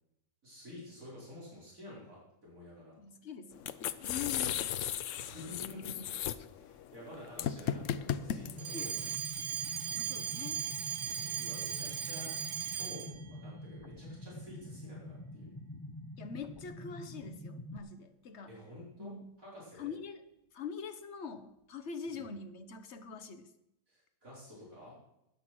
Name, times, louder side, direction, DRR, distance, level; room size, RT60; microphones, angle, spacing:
voice 1, 0.4-3.0 3.6-3.9 5.2-6.0 6.5-8.9 11.0-12.4 12.7-15.5 18.5-19.9 22.1-22.2 23.9-24.9, left 1 dB, 55° right, -7 dB, 5.3 m, -50 dB
voice 2, 3.0-3.7 4.0-4.8 5.1-5.2 8.7-9.0 9.7-10.6 16.2-18.6 19.0-19.2 19.8-20.2 20.5-23.5, left 6 dB, 50° left, 10 dB, 1.1 m, -44 dB
sound 1, 3.5-9.2, left 10 dB, 65° left, 0.8 m, -36 dB
sound 2, 7.8-17.8, left 1 dB, 20° left, 0.6 m, -47 dB
Alarm, 8.6-13.2, right 8 dB, 85° right, 1.5 m, -37 dB
13.0 x 10.0 x 6.1 m, 0.84 s
omnidirectional pair, 1.8 m